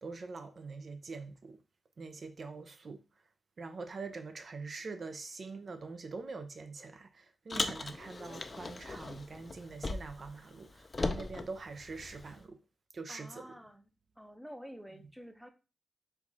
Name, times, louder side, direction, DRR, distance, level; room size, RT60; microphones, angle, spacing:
voice 1, 0.0-1.6 2.0-3.0 3.6-12.6 12.9-13.4, right 4 dB, 55° right, 0.5 m, -44 dB
Car, 7.5-10.3 10.6-12.4, left 3 dB, 35° left, 0.4 m, -38 dB
voice 2, 13.1-13.9 14.2-15.5, equal, 5° right, 0.6 m, -49 dB
4.4 x 2.4 x 4.0 m
wide cardioid pair, 95°, 0 cm